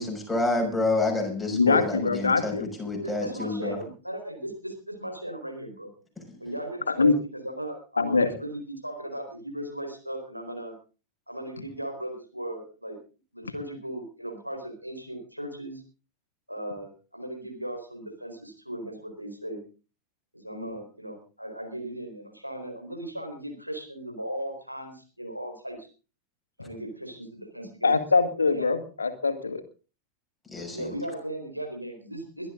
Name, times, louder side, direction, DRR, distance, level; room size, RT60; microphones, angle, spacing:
voice 1, 0.0-3.8 30.5-31.0, left 2 dB, 5° left, 0 dB, 6.2 m, -28 dB
voice 2, 1.5-2.7 6.9-7.1 8.0-8.3 27.8-29.6, left 4 dB, 75° left, 8 dB, 1.9 m, -23 dB
voice 3, 3.0-5.9 6.4-10.7 11.3-13.0 13.3-15.8 16.5-19.6 20.3-25.9 26.6-27.9 28.5-28.7 30.7-32.5, right 1 dB, 90° right, 3 dB, 4.3 m, -37 dB
22.5 x 12.5 x 3.8 m, 0.35 s
figure-of-eight pair, 90°, 0 cm